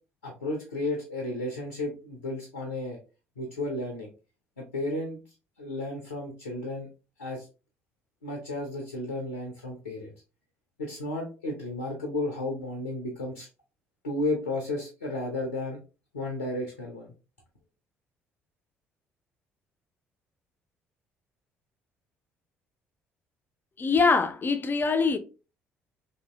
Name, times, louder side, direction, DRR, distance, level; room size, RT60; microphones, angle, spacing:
voice 1, 0.2-3.0 3.4-4.1 4.6-5.2 5.6-6.9 7.2-7.5 8.2-10.1 10.8-13.5 14.0-15.8 16.1-17.1, left 2 dB, 85° left, 0.5 m, -33 dB
voice 2, 23.8-25.2, left 4 dB, 30° left, 0.4 m, -23 dB
2.7 x 2.6 x 2.4 m
figure-of-eight pair, 50°, 7 cm